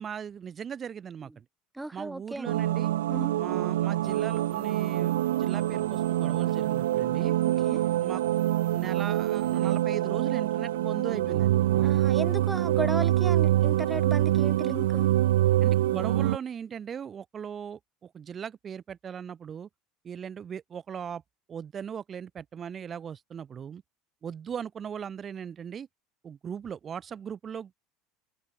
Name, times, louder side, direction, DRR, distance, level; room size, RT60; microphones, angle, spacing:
voice 1, 0.0-1.4 1.9-2.9 3.4-7.4 8.0-8.2 8.7-11.9 15.6-19.7 20.0-21.2 21.5-23.8 24.2-25.9 26.2-27.8, right 7 dB, 35° right, 1.4 m, -38 dB
voice 2, 1.7-2.5 3.1-3.3 7.6-7.8 11.8-15.1, right 2 dB, 10° right, 1.3 m, -35 dB
sound 1, 2.5-16.4, right 14 dB, 85° right, 0.5 m, -25 dB
sound 2, 4.0-9.8, right 13 dB, 50° right, 4.0 m, -51 dB
hypercardioid pair, 85°, 0 cm